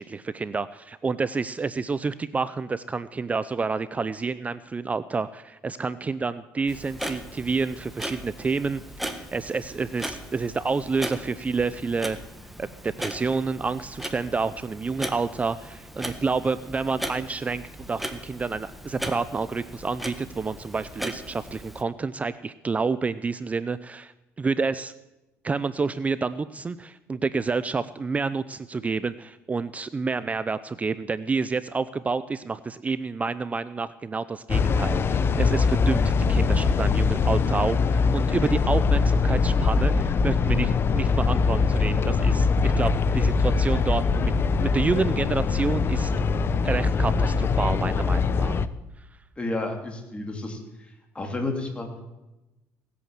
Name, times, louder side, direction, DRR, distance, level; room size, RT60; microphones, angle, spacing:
voice 1, 0.0-8.8 9.1-12.2 12.6-24.1 24.4-24.9 25.4-36.0 36.3-44.3 44.6-46.1 46.6-48.6, right 4 dB, 25° right, 15 dB, 0.5 m, -29 dB
Clock, 6.7-21.8, equal, ahead, 1.6 m, -38 dB
sound 1, 34.5-48.7, left 4 dB, 40° left, 0.8 m, -22 dB
voice 2, 49.4-50.6 51.1-51.9, left 2 dB, 20° left, 3 dB, 3.0 m, -30 dB
18.0 x 8.5 x 7.4 m, 1.0 s
supercardioid pair, 90°, 6 cm